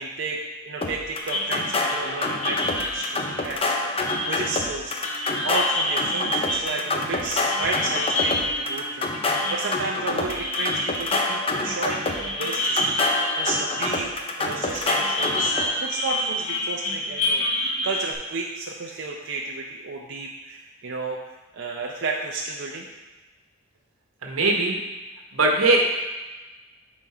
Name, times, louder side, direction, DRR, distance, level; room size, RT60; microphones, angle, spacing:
voice 1, 0.0-4.9 5.4-9.1 9.5-12.8 13.3-14.1 14.4-21.2 21.5-22.9, right 3 dB, 60° right, -1 dB, 0.6 m, -32 dB
sound 1, 0.8-15.7, left 2 dB, 25° left, 0.6 m, -27 dB
sound 2, 1.2-14.3 14.7-18.1, left 1 dB, 80° left, 1.7 m, -28 dB
voice 2, 24.2-24.8 25.3-25.8, right 2 dB, 85° right, 1 dB, 1.1 m, -20 dB
7.3 x 4.1 x 4.8 m, 1.2 s
head